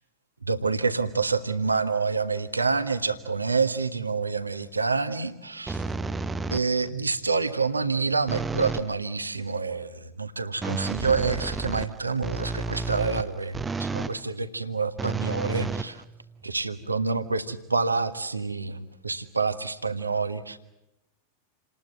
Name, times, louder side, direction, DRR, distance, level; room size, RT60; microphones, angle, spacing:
voice 1, 0.4-5.8 6.5-16.0 16.4-20.6, right 4 dB, 80° right, 9 dB, 1.4 m, -27 dB
sound 1, 5.7-6.9 8.3-8.9 10.6-14.2 15.0-16.5, right 3 dB, 15° right, 0.9 m, -31 dB
28.5 x 20.0 x 7.9 m, 0.89 s
figure-of-eight pair, 90°, 0 cm